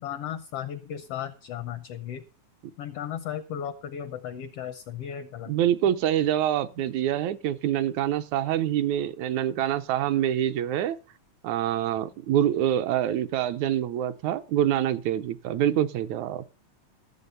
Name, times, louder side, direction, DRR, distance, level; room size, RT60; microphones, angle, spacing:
voice 1, 0.0-2.2 2.8-5.5, left 9 dB, 75° left, 1.4 m, -35 dB
voice 2, 5.5-11.0 11.4-16.5, right 11 dB, 75° right, 2.0 m, -26 dB
15.0 x 7.3 x 5.6 m
omnidirectional pair, 3.5 m